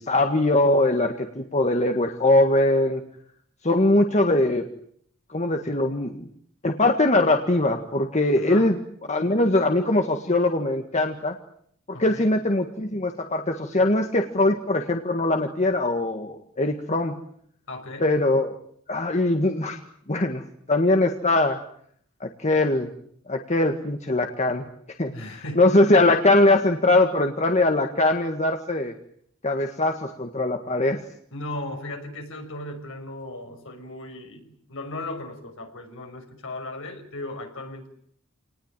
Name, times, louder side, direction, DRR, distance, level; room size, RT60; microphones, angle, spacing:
voice 1, 0.0-3.0 3.6-4.7 5.3-6.2 6.6-8.8 9.1-11.4 11.9-17.2 18.0-18.6 18.9-19.8 20.1-20.4 20.7-21.6 22.2-22.9 23.3-24.7 25.0-28.9 29.4-31.0, left 2 dB, 30° left, 5 dB, 1.8 m, -21 dB
voice 2, 8.4-8.8 11.9-12.4 17.7-18.1 25.1-25.7 31.3-37.9, left 2 dB, 65° left, 5 dB, 6.0 m, -36 dB
28.5 x 19.5 x 9.1 m, 0.66 s
head